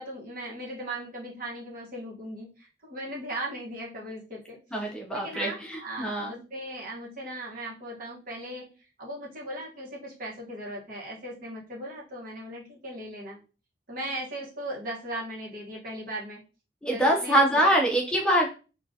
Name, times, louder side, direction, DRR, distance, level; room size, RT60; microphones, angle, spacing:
voice 1, 0.0-4.6 5.1-8.7 9.0-13.4 13.9-16.4 16.9-17.6, right 1 dB, 50° right, -3 dB, 1.1 m, -38 dB
voice 2, 4.7-6.4 16.8-18.5, right 1 dB, 5° left, -1 dB, 0.5 m, -24 dB
3.6 x 2.4 x 2.6 m, 0.34 s
head